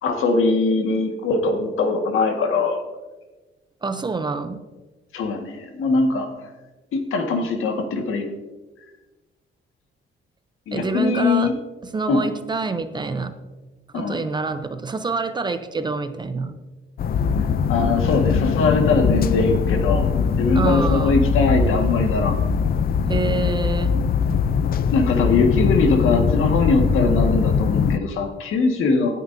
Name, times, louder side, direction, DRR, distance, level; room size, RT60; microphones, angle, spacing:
voice 1, 0.0-2.8 5.1-6.3 6.9-8.2 10.7-11.5 12.1-12.3 13.9-14.2 17.7-20.1 20.4-22.4 24.9-29.2, left 3 dB, 75° left, 4 dB, 1.7 m, -21 dB
voice 2, 3.8-4.6 10.7-11.5 11.8-13.3 13.9-16.6 20.5-21.2 23.1-23.9, right 4 dB, 20° right, 9 dB, 0.5 m, -26 dB
sound 1, 17.0-28.0, left 6 dB, 45° left, 0.4 m, -21 dB
18.0 x 9.2 x 2.7 m, 1.2 s
cardioid pair, 170°, 21 cm